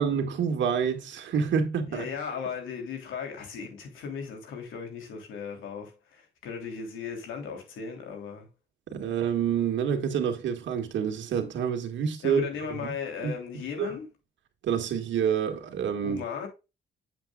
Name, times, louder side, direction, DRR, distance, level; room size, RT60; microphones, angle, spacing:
voice 1, 0.0-2.1 8.9-12.4 12.8-12.9 13.2-13.3 13.8-13.9 14.6-16.2, right 7 dB, 70° right, 2.0 m, -27 dB
voice 2, 1.9-8.5 12.2-14.1 16.0-16.5, left 6 dB, 80° left, 3.3 m, -37 dB
8.4 x 7.7 x 2.4 m
cardioid pair, 90°, 20 cm